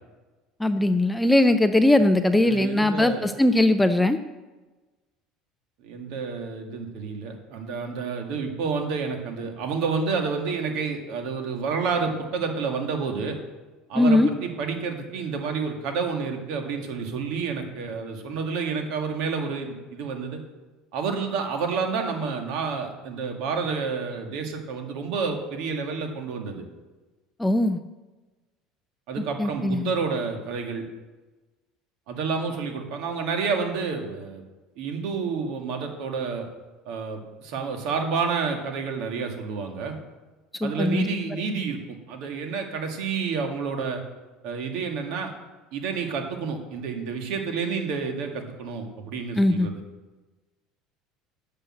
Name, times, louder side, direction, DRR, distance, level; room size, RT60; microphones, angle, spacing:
voice 1, 0.6-4.2 14.0-14.3 27.4-27.8 29.4-29.9 40.6-41.1 49.3-49.7, left 1 dB, 5° left, 9 dB, 0.4 m, -20 dB
voice 2, 2.5-3.4 5.8-13.4 13.9-20.4 20.9-26.6 29.1-30.9 32.1-34.4 34.8-36.5 36.9-40.0 40.6-44.0 44.4-45.3 45.7-49.8, right 5 dB, 60° right, 4 dB, 2.0 m, -29 dB
12.0 x 6.7 x 7.7 m, 1.2 s
cardioid pair, 165°, 0 cm